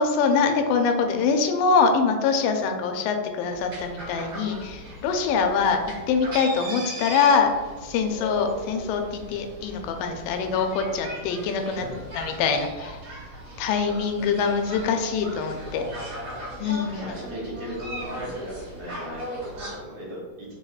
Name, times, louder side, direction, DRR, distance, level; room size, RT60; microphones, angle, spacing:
voice 1, 0.0-5.8 6.1-7.5 7.8-11.9 12.1-13.0 13.6-15.8 16.6-17.0, left 5 dB, 85° left, 5 dB, 2.2 m, -24 dB
sound 1, 3.4-19.7, equal, 40° right, 1.2 m, -38 dB
voice 2, 11.7-12.2 16.9-20.5, equal, 60° right, -6 dB, 2.5 m, -38 dB
6.5 x 2.8 x 2.3 m, 1.4 s
omnidirectional pair, 3.8 m